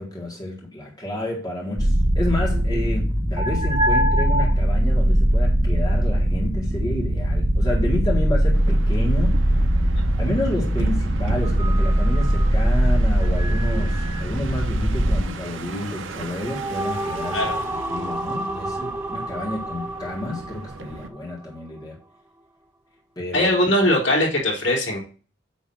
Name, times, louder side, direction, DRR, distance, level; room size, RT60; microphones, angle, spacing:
voice 1, 0.0-9.4 10.2-17.4 17.9-22.0 23.1-23.5, left 1 dB, 20° left, -2 dB, 1.7 m, -30 dB
sound 1, 1.8-15.2, right 1 dB, 30° right, 1.5 m, -20 dB
sound 2, 8.5-21.1, right 2 dB, 80° right, 0.8 m, -35 dB
sound 3, 16.0-21.5, right 1 dB, 10° right, 0.5 m, -31 dB
voice 2, 23.3-25.0, left 1 dB, 75° left, -4 dB, 3.6 m, -20 dB
8.7 x 3.1 x 6.2 m, 0.39 s
head